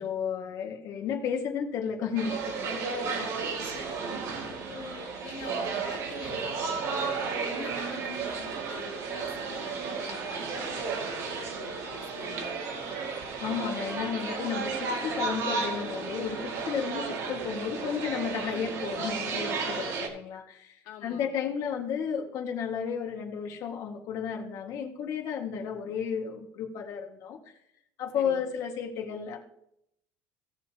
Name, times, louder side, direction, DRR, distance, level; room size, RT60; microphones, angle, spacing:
voice 1, 0.0-2.9 13.4-27.4 28.0-29.4, left 7 dB, 55° left, 3 dB, 1.9 m, -33 dB
sound 1, 2.2-20.1, right 4 dB, 50° right, 2.2 m, -33 dB
voice 2, 3.6-4.0 4.5-12.6 20.8-21.3 28.1-28.4, left 6 dB, 80° left, 1 dB, 2.5 m, -46 dB
17.0 x 7.0 x 3.0 m, 0.75 s
cardioid pair, 150°, 6 cm